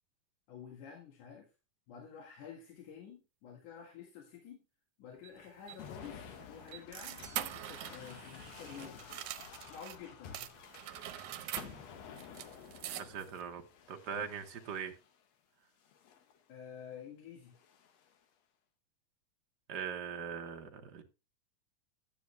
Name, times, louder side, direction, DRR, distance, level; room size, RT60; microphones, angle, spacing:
voice 1, 0.5-1.5 1.9-4.6 5.0-9.2 9.7-10.5 16.5-17.5, left 7 dB, 80° left, 1 dB, 3.3 m, -50 dB
sound 1, 5.2-10.0 10.3-13.4, right 12 dB, 75° right, 2.2 m, -45 dB
sound 2, 5.8-15.2 15.8-16.4 17.5-18.2, left 7 dB, 65° left, 2.1 m, -52 dB
voice 2, 13.0-13.6 13.9-14.9 19.7-21.0, right 7 dB, 60° right, 5 dB, 1.0 m, -40 dB
12.0 x 8.8 x 3.2 m, 0.29 s
omnidirectional pair, 3.5 m